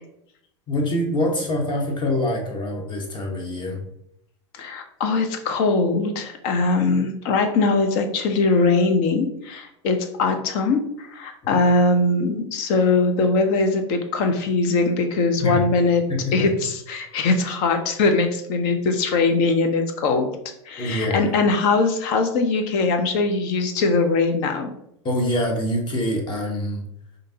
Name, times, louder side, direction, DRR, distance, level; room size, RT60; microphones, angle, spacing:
voice 1, 0.7-3.8 11.4-11.6 15.4-15.6 16.1-16.5 20.8-21.3 25.0-26.8, left 1 dB, 30° left, 2 dB, 1.1 m, -25 dB
voice 2, 4.5-16.0 16.3-20.3 20.7-24.7, left 3 dB, 55° left, 6 dB, 0.7 m, -21 dB
5.0 x 2.6 x 2.8 m, 0.77 s
hypercardioid pair, 90°, 15 cm